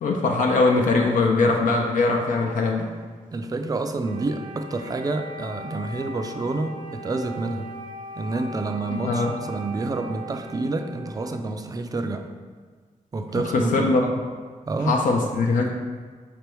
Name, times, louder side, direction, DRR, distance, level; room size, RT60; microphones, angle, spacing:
voice 1, 0.0-2.9 8.9-9.3 13.3-14.1 14.8-15.7, left 3 dB, 75° left, 1 dB, 0.4 m, -21 dB
voice 2, 3.3-7.7 8.2-12.3 13.1-14.0 14.7-15.0, right 3 dB, 30° right, 6 dB, 0.4 m, -28 dB
Wind instrument woodwind instrument, 4.0-11.7, equal, 75° right, 0.6 m, -40 dB
5.1 x 3.4 x 3.0 m, 1.5 s
cardioid pair, 95°, 14 cm